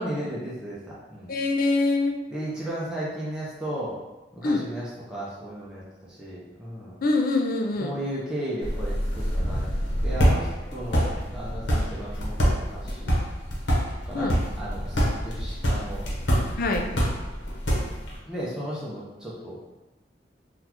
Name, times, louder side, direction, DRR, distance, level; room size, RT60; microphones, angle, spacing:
voice 1, 0.0-1.3 2.3-3.9 4.3-7.0 7.8-13.2 14.1-16.0 16.7-17.0 18.2-19.6, right 1 dB, 5° right, -8 dB, 0.6 m, -35 dB
voice 2, 1.3-2.2 4.4-4.7 7.0-8.0 14.1-14.4 16.6-16.9, left 3 dB, 55° left, 3 dB, 0.4 m, -24 dB
sound 1, 8.6-18.2, equal, 80° left, 0.9 m, -26 dB
3.8 x 2.4 x 2.9 m, 1.0 s
head